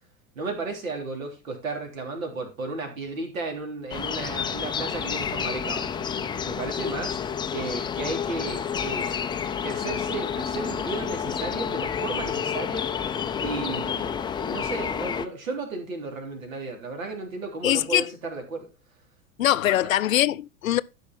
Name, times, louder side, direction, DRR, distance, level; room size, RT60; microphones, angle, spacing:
voice 1, 0.4-6.1 6.5-7.2 7.5-9.1 9.6-12.9 13.4-18.7 19.8-19.9, right 3 dB, 70° right, 3.5 m, -34 dB
sound 1, 3.9-15.3, left 7 dB, 10° left, 0.5 m, -29 dB
voice 2, 17.6-18.1 19.4-20.8, left 13 dB, 70° left, 0.6 m, -22 dB
13.0 x 5.4 x 4.4 m
figure-of-eight pair, 90°, 42 cm